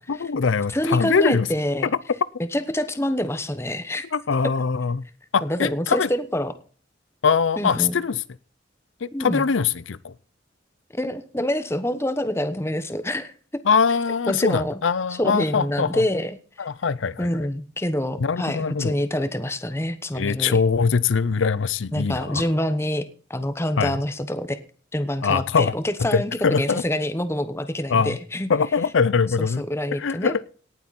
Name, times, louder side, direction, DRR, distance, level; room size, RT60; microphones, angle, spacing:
voice 1, 0.1-1.5 4.1-5.0 5.3-6.1 7.2-8.2 9.0-10.1 13.7-16.0 16.6-17.3 18.2-18.9 20.1-22.4 23.8-24.0 25.2-25.7 26.1-26.8 27.9-28.2 28.5-29.6 30.0-30.5, left 5 dB, 80° left, 18 dB, 0.6 m, -22 dB
voice 2, 0.7-1.9 2.5-4.1 5.4-6.5 7.6-7.9 9.1-9.4 10.9-13.6 14.3-14.8 15.2-16.7 17.2-20.6 21.9-24.6 24.9-28.5 29.4-30.3, left 1 dB, 15° left, 11 dB, 1.0 m, -26 dB
18.0 x 8.1 x 4.2 m, 0.42 s
head